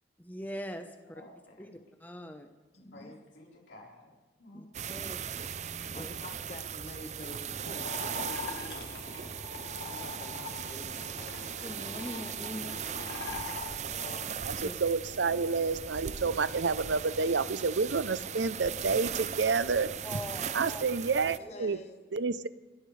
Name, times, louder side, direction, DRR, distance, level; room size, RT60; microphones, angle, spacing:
voice 1, 0.2-1.2 1.6-2.5 4.5-5.2 5.9-6.1 9.1-9.4 11.6-12.8 14.0-14.1 14.5-14.7 20.0-20.9 21.3-21.8, equal, 10° left, 6 dB, 0.9 m, -43 dB
voice 2, 1.1-1.7 2.9-4.1 4.4-4.7, left 1 dB, 90° left, -3 dB, 4.3 m, -52 dB
voice 3, 2.7-3.2 5.9-8.9 9.9-11.2 21.1-22.0, left 1 dB, 40° left, 5 dB, 1.0 m, -48 dB
sound 1, 4.7-21.4, right 7 dB, 40° right, 0.5 m, -38 dB
sound 2, 7.7-14.2, left 4 dB, 65° left, 1.8 m, -42 dB
voice 4, 14.4-19.9 20.5-21.8 22.1-22.5, right 4 dB, 85° right, 15 dB, 0.7 m, -29 dB
29.5 x 13.0 x 3.4 m, 1.3 s
head